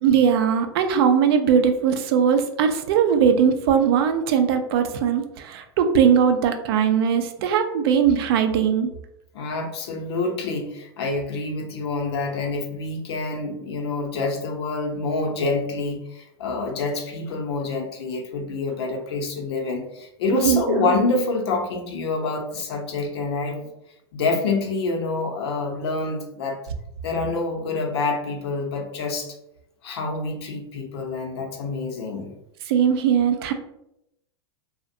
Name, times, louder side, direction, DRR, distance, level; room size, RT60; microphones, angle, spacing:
voice 1, 0.0-8.9 20.3-20.9 32.7-33.5, right 7 dB, 60° right, 7 dB, 0.4 m, -20 dB
voice 2, 9.3-23.7 24.1-26.6 27.0-29.3 29.8-32.3, left 3 dB, 70° left, 2 dB, 0.6 m, -27 dB
2.4 x 2.1 x 2.6 m, 0.82 s
hypercardioid pair, 110°, 14 cm